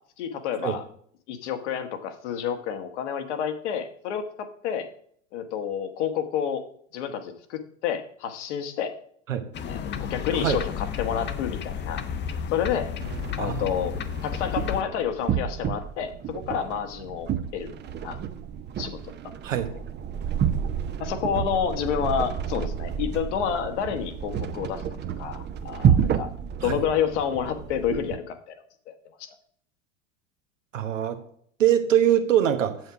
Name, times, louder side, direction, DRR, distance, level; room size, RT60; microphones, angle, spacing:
voice 1, 0.2-0.8 1.3-4.9 5.3-6.6 6.9-8.9 9.6-12.0 12.5-12.9 13.4-13.9 14.2-17.7 18.0-18.2 18.8-19.0 19.2-19.3 21.0-24.8 25.2-26.3 26.6-28.4 28.9-29.0 29.2-29.3, left 8 dB, 65° left, 6 dB, 1.5 m, -29 dB
sound 1, 9.5-14.8, left 8 dB, 30° left, 0.9 m, -32 dB
sound 2, 13.0-28.2, right 8 dB, 25° right, 0.7 m, -30 dB
voice 2, 30.7-31.2 31.6-32.8, right 10 dB, 75° right, 7 dB, 1.2 m, -23 dB
8.0 x 7.8 x 4.9 m, 0.62 s
figure-of-eight pair, 80°, 38 cm